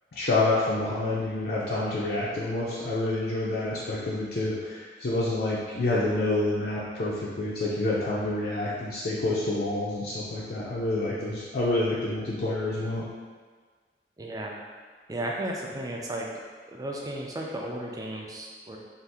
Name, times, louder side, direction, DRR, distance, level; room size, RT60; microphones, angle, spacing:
voice 1, 0.1-13.0, left 2 dB, 60° left, -7 dB, 0.4 m, -28 dB
voice 2, 14.2-14.6 15.1-16.3 16.7-18.8, right 1 dB, 20° right, -1 dB, 0.3 m, -34 dB
2.7 x 2.4 x 3.4 m, 1.5 s
head